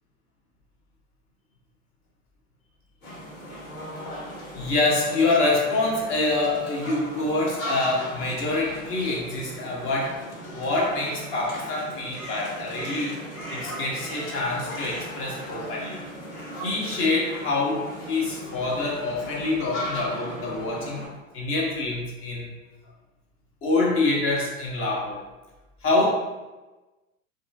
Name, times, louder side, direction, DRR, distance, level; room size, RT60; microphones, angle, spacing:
sound 1, 3.0-21.1, equal, 70° left, 1.5 m, -37 dB
voice 1, 4.5-13.1 13.5-16.0 16.6-21.0 21.3-22.5 23.6-25.2 25.8-26.1, left 2 dB, 30° left, -2 dB, 0.8 m, -26 dB
2.9 x 2.4 x 2.6 m, 1.1 s
figure-of-eight pair, 90°, 41 cm